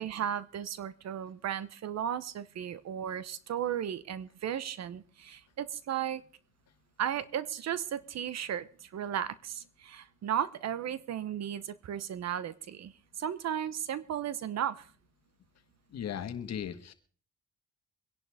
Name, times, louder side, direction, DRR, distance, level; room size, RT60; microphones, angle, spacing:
voice 1, 0.0-6.2 7.0-14.9, right 9 dB, 60° right, 16 dB, 0.9 m, -35 dB
voice 2, 15.9-16.9, left 9 dB, 60° left, 9 dB, 1.5 m, -37 dB
23.5 x 11.0 x 3.5 m, 0.42 s
cardioid pair, 90°, 30 cm